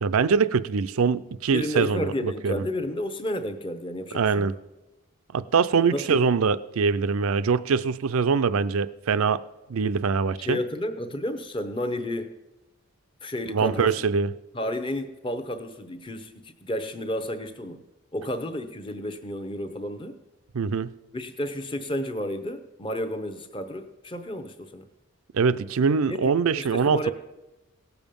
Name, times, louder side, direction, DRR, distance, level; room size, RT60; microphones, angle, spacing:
voice 1, 0.0-2.6 4.1-4.5 5.3-9.4 9.7-10.6 13.5-14.3 20.5-20.9 25.3-27.1, right 5 dB, 85° right, 15 dB, 0.5 m, -23 dB
voice 2, 1.5-4.4 5.9-6.2 10.4-12.3 13.2-14.0 14.5-17.8 18.1-20.2 21.1-24.8 26.1-27.1, left 1 dB, 25° left, 8 dB, 0.7 m, -31 dB
17.5 x 7.1 x 5.3 m, 1.0 s
head